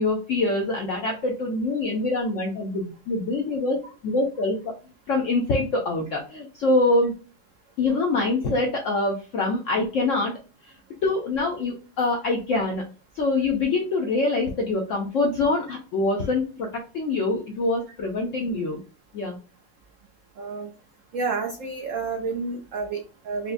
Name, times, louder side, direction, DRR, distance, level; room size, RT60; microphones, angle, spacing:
voice 1, 0.0-3.8 4.0-4.7 5.1-7.1 7.8-10.3 10.6-10.7 11.0-12.8 13.1-18.8 19.1-19.4, left 2 dB, 75° left, 1 dB, 0.7 m, -25 dB
voice 2, 20.4-20.7 21.1-23.5, right 4 dB, 85° right, 3 dB, 0.7 m, -30 dB
4.6 x 2.1 x 2.5 m, 0.35 s
omnidirectional pair, 1.9 m